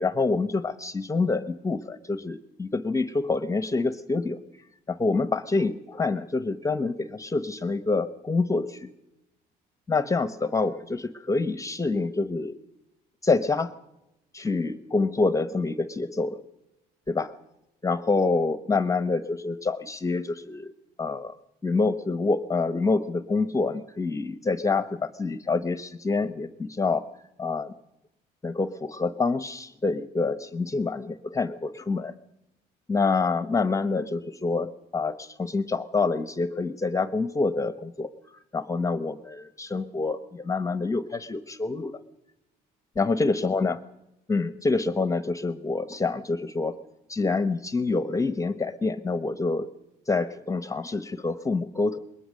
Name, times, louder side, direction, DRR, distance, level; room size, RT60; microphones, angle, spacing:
voice 1, 0.0-4.4 4.9-8.9 9.9-12.6 13.2-13.7 14.3-16.4 17.1-17.3 17.8-20.7 21.0-21.4 21.6-27.0 27.4-27.7 28.4-32.1 32.9-38.1 38.5-42.0 43.0-43.7 44.3-46.7 47.1-49.7 50.1-52.0, left 3 dB, 20° left, 13 dB, 1.0 m, -27 dB
21.5 x 19.0 x 6.5 m, 0.89 s
cardioid pair, 110°, 17 cm